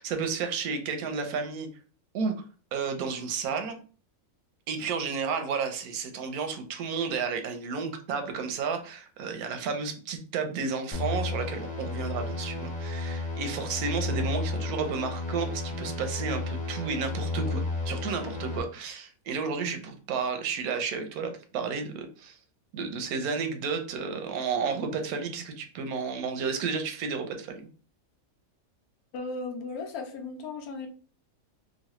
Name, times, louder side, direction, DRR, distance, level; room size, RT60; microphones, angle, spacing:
voice 1, 0.0-1.7 2.1-2.3 2.7-3.8 4.7-22.4 22.7-27.6, right 5 dB, 90° right, 6 dB, 1.1 m, -32 dB
sound 1, 10.9-18.6, left 3 dB, 5° left, 0.7 m, -32 dB
voice 2, 29.1-30.9, left 3 dB, 85° left, 5 dB, 1.1 m, -36 dB
3.1 x 2.3 x 2.9 m, 0.40 s
omnidirectional pair, 1.5 m